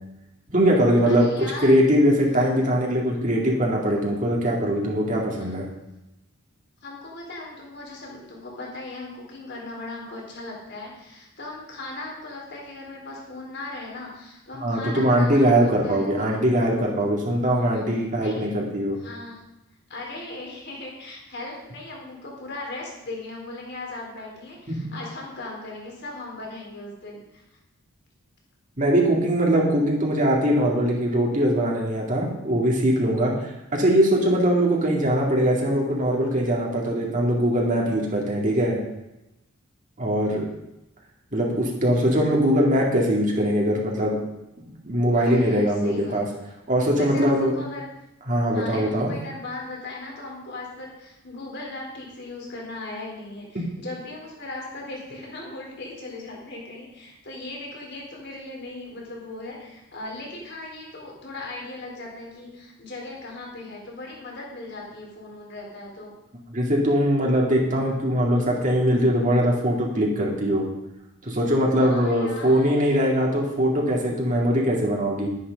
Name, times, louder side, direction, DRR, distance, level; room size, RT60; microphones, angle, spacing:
voice 1, 0.5-5.7 14.6-19.0 24.7-24.8 28.8-38.8 40.0-40.5 41.3-44.2 44.8-46.2 46.7-47.5 48.3-49.1 66.5-70.6 71.2-75.3, equal, 40° right, -2 dB, 2.3 m, -21 dB
voice 2, 1.1-1.8 2.3-2.5 5.4-5.6 6.8-16.4 17.7-17.9 18.1-18.4 19.0-19.4 19.9-27.4 45.0-46.2 47.0-47.9 48.5-66.1 71.8-73.1, left 2 dB, 55° left, -1 dB, 3.8 m, -38 dB
11.5 x 10.5 x 5.2 m, 0.91 s
head